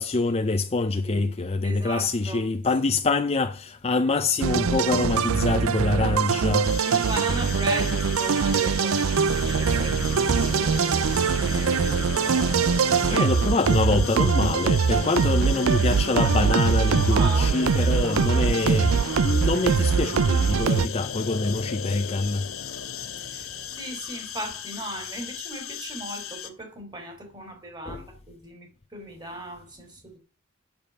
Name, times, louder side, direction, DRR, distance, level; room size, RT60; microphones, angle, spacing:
voice 1, 0.0-6.7 13.1-18.9 19.2-22.5 27.9-28.0, left 3 dB, 30° left, 0.6 m, -25 dB
voice 2, 1.6-2.4 2.8-2.9 6.9-10.8 11.3-13.3 17.1-17.5 18.1-18.4 23.2-23.5 23.7-30.2, right 2 dB, 20° right, 3.3 m, -37 dB
sound 1, 4.4-20.9, right 6 dB, 80° right, 0.5 m, -22 dB
sound 2, 6.6-26.5, left 10 dB, 85° left, 2.1 m, -37 dB
sound 3, 9.4-23.8, left 4 dB, 60° left, 0.8 m, -38 dB
8.8 x 7.1 x 8.5 m
head